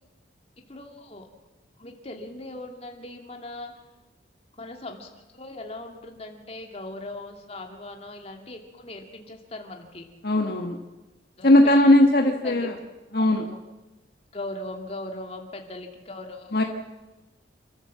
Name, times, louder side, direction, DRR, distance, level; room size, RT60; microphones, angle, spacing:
voice 1, 0.6-1.3 1.8-3.7 4.6-10.1 11.4-11.5 12.4-12.7 13.1-13.6 14.3-16.6, left 2 dB, 35° left, 3 dB, 2.6 m, -39 dB
voice 2, 10.2-10.8 11.4-12.7 13.1-13.5 16.5-16.6, left 1 dB, 55° left, 3 dB, 1.4 m, -18 dB
28.0 x 13.5 x 7.5 m, 1.1 s
head